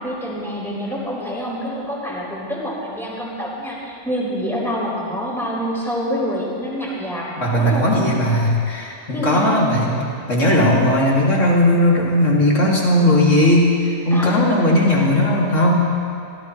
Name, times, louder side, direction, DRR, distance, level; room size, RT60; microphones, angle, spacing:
voice 1, 0.0-7.3 7.6-7.9 9.1-9.6 14.1-14.5, equal, ahead, -7 dB, 4.9 m, -26 dB
voice 2, 7.4-10.0 10.3-15.9, left 1 dB, 70° left, -4 dB, 3.2 m, -17 dB
25.0 x 17.5 x 3.3 m, 2.4 s
omnidirectional pair, 1.3 m